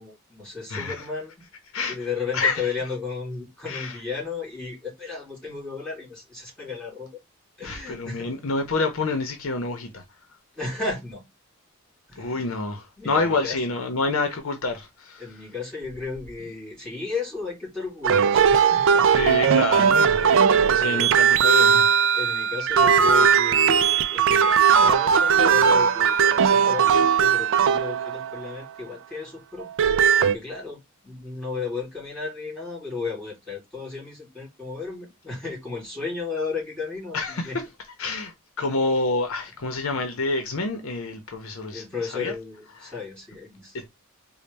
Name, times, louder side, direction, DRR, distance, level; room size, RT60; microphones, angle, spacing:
voice 1, 0.0-1.3 1.9-7.1 7.6-8.3 10.5-11.2 12.1-12.5 13.0-13.6 15.2-19.1 19.4-21.4 22.1-37.6 41.7-43.8, left 4 dB, 5° left, 2.7 m, -34 dB
voice 2, 0.7-1.1 1.7-2.0 2.3-2.6 3.7-4.0 7.6-10.0 12.2-15.2 19.1-20.2 20.7-21.9 37.1-37.5 38.0-41.8 42.1-42.3 42.8-42.9 43.7-43.9, left 3 dB, 70° left, 0.7 m, -27 dB
sound 1, 18.0-28.5 29.6-30.3, right 7 dB, 60° right, 0.4 m, -19 dB
4.0 x 2.2 x 3.3 m
head